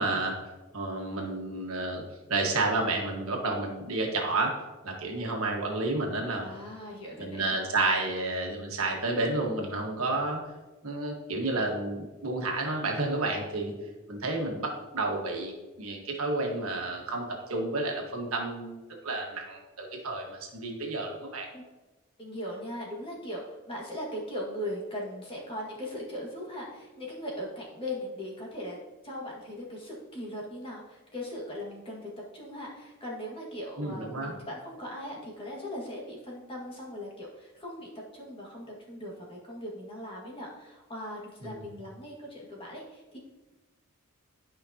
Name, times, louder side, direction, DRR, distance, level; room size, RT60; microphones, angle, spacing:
voice 1, 0.0-2.0 2.3-4.5 4.8-6.5 7.2-10.4 10.8-13.7 14.1-15.5 15.8-18.8 19.0-21.5 33.8-34.4 41.4-41.6, right 2 dB, 75° right, 0 dB, 1.5 m, -30 dB
voice 2, 6.4-7.5 21.5-21.6 22.2-28.8 29.0-43.2, left 1 dB, 25° left, -3 dB, 1.8 m, -39 dB
11.5 x 5.2 x 2.8 m, 1.1 s
head